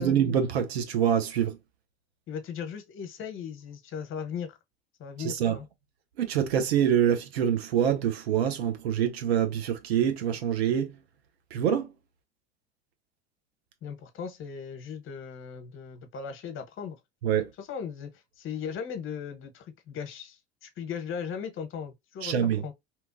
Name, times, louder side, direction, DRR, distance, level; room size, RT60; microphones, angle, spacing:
voice 1, 0.0-1.6 5.2-5.6 6.2-10.9 11.5-11.9 17.2-17.5 22.2-22.6, right 9 dB, 85° right, 0.7 m, -25 dB
voice 2, 2.3-4.6 5.0-5.7 13.8-17.0 17.6-18.1 18.4-22.4 22.6-22.7, left 7 dB, 40° left, 0.9 m, -37 dB
2.9 x 2.3 x 2.4 m
hypercardioid pair, 75°, 30 cm